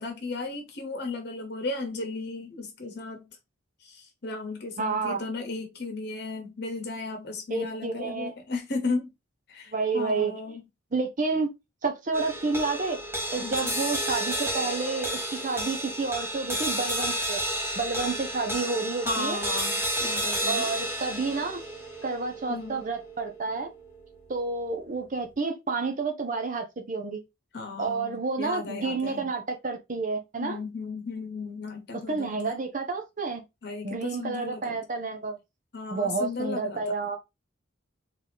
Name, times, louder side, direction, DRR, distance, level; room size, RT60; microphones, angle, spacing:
voice 1, 0.0-3.2 3.8-9.1 9.5-10.6 13.3-13.7 19.0-20.7 22.5-22.9 27.5-29.3 30.4-32.5 33.6-34.8 35.7-36.8, left 3 dB, 55° left, 1.1 m, -35 dB
voice 2, 4.8-5.2 7.5-8.3 9.7-10.3 10.9-11.5 11.8-13.0 13.3-17.4 17.8-19.4 20.5-21.6 22.0-23.7 24.3-27.2 27.8-30.6 32.1-33.4 33.8-35.4 35.9-37.2, right 4 dB, 40° right, 0.6 m, -30 dB
sound 1, 12.1-24.6, right 1 dB, 10° right, 1.1 m, -32 dB
3.7 x 2.8 x 3.4 m
head